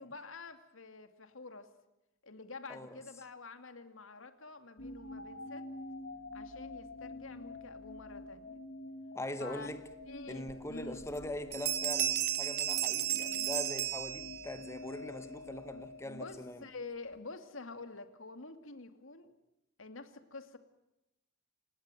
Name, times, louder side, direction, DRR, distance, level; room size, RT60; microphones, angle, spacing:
voice 1, 0.0-1.7 2.2-5.6 6.3-8.6 9.4-9.7 10.0-11.0 16.0-19.3 19.8-20.6, left 3 dB, 85° left, 2.5 m, -48 dB
sound 1, 4.8-16.9, left 2 dB, 70° left, 2.5 m, -47 dB
voice 2, 9.1-9.8 10.3-16.6, left 1 dB, 15° left, 1.2 m, -42 dB
sound 2, 10.5-10.6 11.0-11.3 11.5-14.7, right 11 dB, 50° right, 1.4 m, -33 dB
29.0 x 17.5 x 9.3 m
head